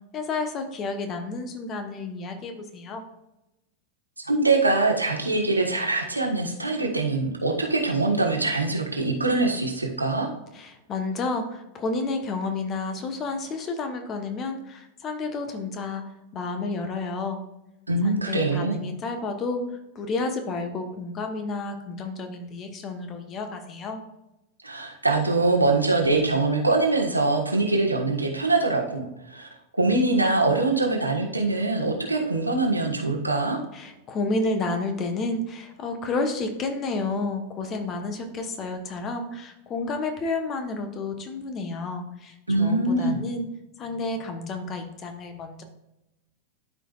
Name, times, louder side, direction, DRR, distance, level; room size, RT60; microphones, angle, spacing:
voice 1, 0.1-3.0 10.5-16.0 16.3-17.4 18.0-19.6 19.9-24.0 33.7-43.5 43.8-45.6, left 3 dB, 30° left, 6 dB, 1.2 m, -31 dB
voice 2, 4.2-10.3 17.9-18.8 24.6-29.5 29.8-33.6 42.5-43.2, right 2 dB, 85° right, 1 dB, 1.4 m, -23 dB
12.0 x 5.1 x 2.4 m, 0.93 s
figure-of-eight pair, 90°, 0 cm